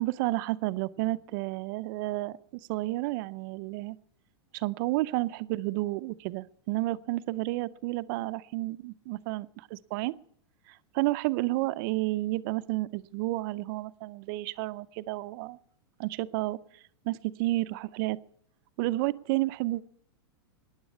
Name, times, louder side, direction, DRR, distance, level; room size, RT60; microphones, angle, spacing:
voice 1, 0.0-4.0 4.5-10.1 10.7-15.6 16.0-18.2 18.8-19.8, right 19 dB, 50° right, 15 dB, 0.5 m, -31 dB
14.5 x 9.6 x 8.3 m, 0.70 s
hypercardioid pair, 130°, 15 cm